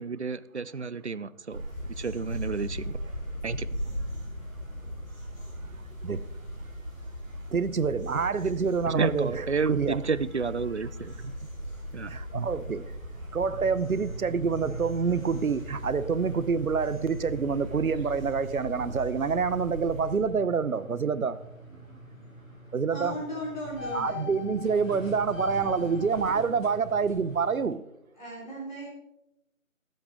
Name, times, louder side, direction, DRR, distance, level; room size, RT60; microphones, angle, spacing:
voice 1, 0.0-1.6 2.0-3.0 3.4-3.7 8.9-11.3 11.9-12.5, right 4 dB, 55° right, 0.5 m, -31 dB
sound 1, 1.5-20.2, equal, ahead, 1.6 m, -38 dB
voice 2, 7.5-10.0 12.1-12.9 13.3-21.4 22.7-23.1 23.9-27.8, right 5 dB, 85° right, 0.8 m, -27 dB
sound 2, 13.3-27.7, left 1 dB, 65° left, 3.8 m, -43 dB
voice 3, 22.9-24.2 28.1-28.9, equal, 35° left, 3.7 m, -36 dB
21.0 x 7.8 x 3.6 m
figure-of-eight pair, 175°, 41 cm